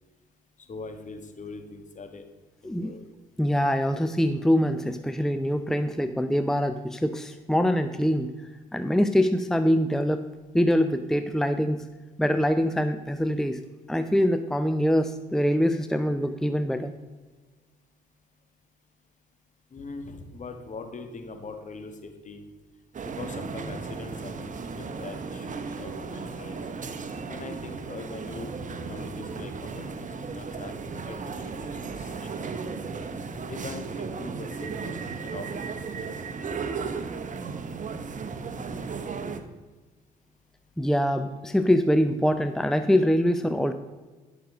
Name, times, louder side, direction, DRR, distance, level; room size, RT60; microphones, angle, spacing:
voice 1, 0.7-2.3 2.6-3.2 19.7-22.4 23.1-26.6 27.3-32.5 33.4-35.9, left 3 dB, 45° left, 6 dB, 1.7 m, -42 dB
voice 2, 3.4-8.3 8.7-10.2 10.5-11.8 12.2-13.6 13.9-16.9 40.8-43.7, equal, 5° left, 9 dB, 0.7 m, -24 dB
sound 1, 22.9-39.4, right 5 dB, 45° right, 1.1 m, -35 dB
11.0 x 6.5 x 5.1 m, 1.3 s
supercardioid pair, 60°, 18 cm